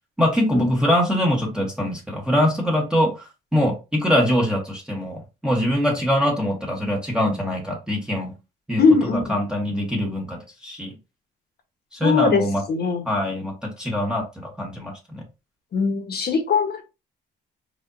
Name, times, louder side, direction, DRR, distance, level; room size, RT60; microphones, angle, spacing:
voice 1, 0.2-8.3 8.7-8.8 9.1-10.9 11.9-12.6 13.1-15.2, equal, 5° right, -2 dB, 1.1 m, -23 dB
voice 2, 8.8-9.4 12.0-12.4 12.7-13.0 15.7-16.8, left 4 dB, 55° left, 4 dB, 1.2 m, -20 dB
5.0 x 2.6 x 2.6 m, 0.28 s
cardioid pair, 90°, 20 cm